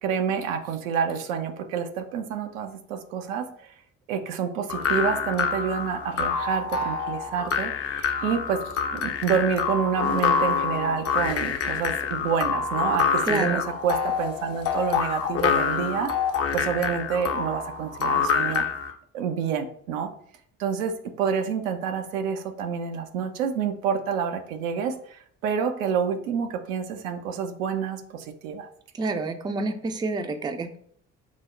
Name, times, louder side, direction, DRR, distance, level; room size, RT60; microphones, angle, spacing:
voice 1, 0.0-3.5 4.1-8.6 8.9-16.1 16.5-18.6 19.1-20.1 20.6-28.7, right 7 dB, 80° right, 6 dB, 0.5 m, -28 dB
sound 1, 4.7-18.9, left 6 dB, 40° left, 0.5 m, -26 dB
voice 2, 13.2-13.6 29.0-30.8, right 3 dB, 10° right, 7 dB, 0.4 m, -28 dB
3.2 x 2.0 x 3.6 m, 0.63 s
figure-of-eight pair, 45°, 39 cm